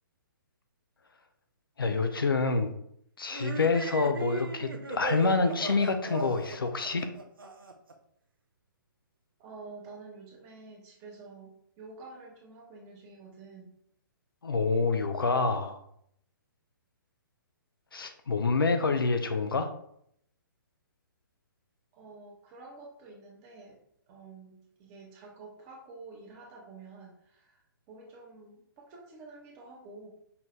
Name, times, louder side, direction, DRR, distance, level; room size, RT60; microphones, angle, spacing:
voice 1, 1.8-2.7 3.2-7.1 14.4-15.8 17.9-19.7, left 4 dB, 90° left, 7 dB, 0.6 m, -27 dB
sound 1, 3.3-7.9, right 4 dB, 85° right, 0.7 m, -37 dB
voice 2, 9.4-13.8 21.9-23.8 24.1-30.1, right 3 dB, 30° right, -1 dB, 1.3 m, -49 dB
5.6 x 2.7 x 3.2 m, 0.70 s
hypercardioid pair, 135°, 11 cm